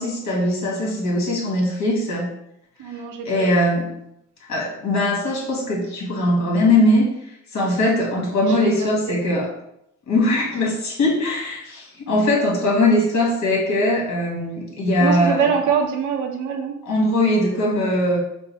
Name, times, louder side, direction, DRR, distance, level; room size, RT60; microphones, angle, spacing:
voice 1, 0.0-2.3 3.3-3.9 4.5-9.5 10.1-15.5 16.9-18.2, left 1 dB, 65° left, -2 dB, 1.8 m, -20 dB
voice 2, 2.8-3.5 8.4-9.2 15.0-16.8, right 6 dB, 80° right, 3 dB, 0.8 m, -24 dB
5.2 x 2.1 x 4.6 m, 0.78 s
cardioid pair, 90°, 30 cm